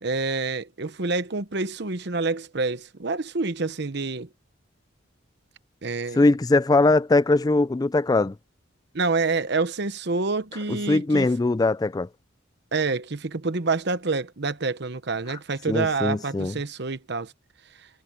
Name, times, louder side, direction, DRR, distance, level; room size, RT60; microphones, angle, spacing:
voice 1, 0.0-4.3 5.8-6.2 8.9-11.3 12.7-17.3, right 3 dB, 60° right, 1.0 m, -27 dB
voice 2, 6.1-8.4 10.7-12.1 15.3-15.4 15.7-16.6, left 2 dB, 20° left, 0.3 m, -21 dB
head